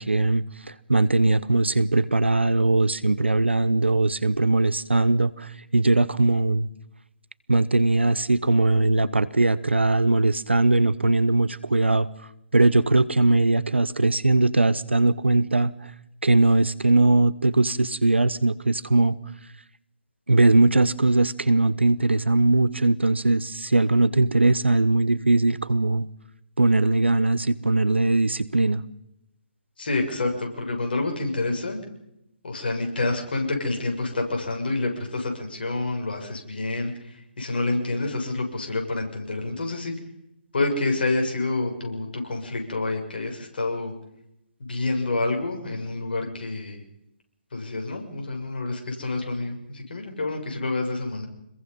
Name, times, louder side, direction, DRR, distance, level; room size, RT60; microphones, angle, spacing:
voice 1, 0.0-6.7 7.5-12.1 12.5-15.9 16.2-19.1 20.3-26.1 26.6-28.8, right 2 dB, 80° right, 1.2 m, -20 dB
voice 2, 29.8-31.8 32.4-39.9 40.5-43.9 44.6-46.8 47.5-51.3, left 2 dB, 60° left, 6.8 m, -28 dB
26.5 x 21.5 x 5.6 m
figure-of-eight pair, 140°, 6 cm